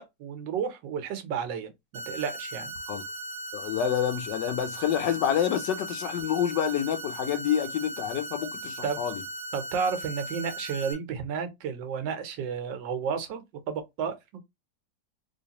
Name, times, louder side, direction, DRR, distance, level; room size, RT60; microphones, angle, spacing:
voice 1, 0.0-1.7 2.1-2.7 8.8-9.0 9.5-14.4, right 6 dB, 85° right, 1.5 m, -32 dB
sound 1, 1.9-10.9, right 1 dB, 35° right, 1.0 m, -38 dB
voice 2, 3.5-9.2, left 9 dB, 75° left, 1.2 m, -28 dB
3.2 x 3.1 x 2.8 m
omnidirectional pair, 1.9 m